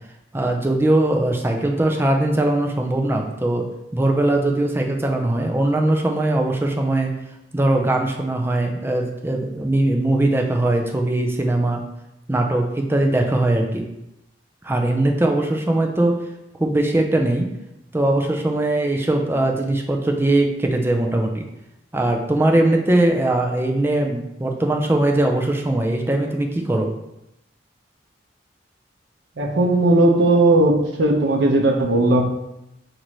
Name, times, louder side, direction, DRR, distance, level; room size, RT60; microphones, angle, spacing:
voice 1, 0.3-3.6 3.9-7.1 7.5-11.8 12.3-13.8 14.6-16.2 16.6-17.5 17.9-21.5 21.9-26.9, right 1 dB, 15° right, 2 dB, 0.4 m, -20 dB
voice 2, 29.4-30.7 31.0-32.2, right 2 dB, 75° right, 1 dB, 0.6 m, -16 dB
5.8 x 2.6 x 3.0 m, 0.85 s
head